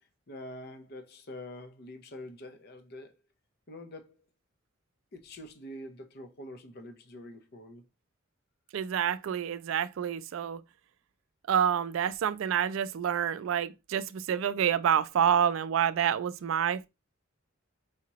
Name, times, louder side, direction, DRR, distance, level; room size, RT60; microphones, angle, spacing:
voice 1, 0.0-3.2 3.7-4.2 5.1-7.9, left 1 dB, 50° left, 0.6 m, -45 dB
voice 2, 8.7-10.6 11.5-16.9, right 8 dB, 70° right, 0.3 m, -28 dB
4.9 x 2.8 x 2.9 m
head